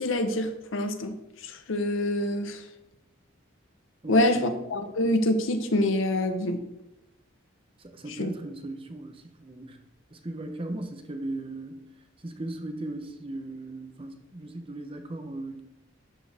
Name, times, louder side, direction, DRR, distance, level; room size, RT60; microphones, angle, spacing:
voice 1, 0.0-2.6 4.1-6.6 8.2-8.3, left 1 dB, 70° left, 7 dB, 0.8 m, -26 dB
voice 2, 4.0-4.6 7.8-9.8 10.1-11.8 12.2-15.6, right 2 dB, 25° right, 6 dB, 0.7 m, -37 dB
11.5 x 4.6 x 3.4 m, 0.92 s
head